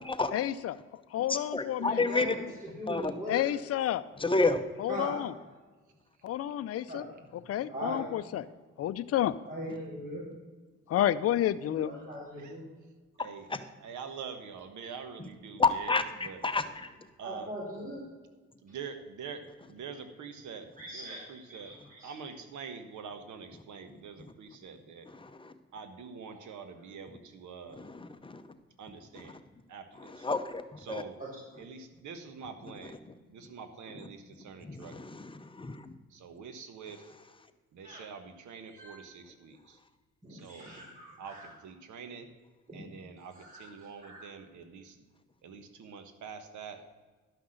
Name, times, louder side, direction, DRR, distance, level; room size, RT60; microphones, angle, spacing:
voice 1, 0.3-0.8 1.1-2.0 3.3-4.0 4.8-5.3 6.2-7.1 7.5-8.4 8.8-9.4 10.9-11.9, left 12 dB, 50° left, 12 dB, 0.5 m, -30 dB
voice 2, 1.3-2.5 2.9-3.1 4.2-4.6 13.5-13.6 15.2-16.9 24.2-24.3 25.1-25.5 27.7-28.4 29.2-29.4 30.0-31.0 32.6-33.1 33.9-34.1 34.6-35.9 36.9-37.0, left 3 dB, 15° left, 8 dB, 0.8 m, -31 dB
voice 3, 2.0-3.5 4.9-5.2 6.9-7.0 7.7-8.1 9.5-10.2 11.6-12.6 17.2-18.0 18.8-18.9 20.8-21.2 21.5-22.1 26.3-26.4 31.2-31.4 37.8-38.0 38.8-39.1 40.2-41.5 42.7-42.8 43.3-44.3, right 1 dB, 25° right, -7 dB, 4.0 m, -40 dB
voice 4, 13.8-15.6 16.3-16.4 17.2-17.5 18.6-19.4 19.7-20.6 21.5-21.7 22.0-25.1 25.7-27.8 28.8-29.3 29.7-30.1 30.9-31.1 31.7-32.9 33.3-34.2 34.4-34.9 36.2-37.0 37.8-38.2 38.5-39.5 40.4-40.7 41.2-41.3 41.6-42.2 42.7-43.3 43.6-44.8 45.4-46.8, right 6 dB, 75° right, 8 dB, 1.3 m, -44 dB
11.5 x 5.9 x 6.5 m, 1.3 s
cardioid pair, 90°, 30 cm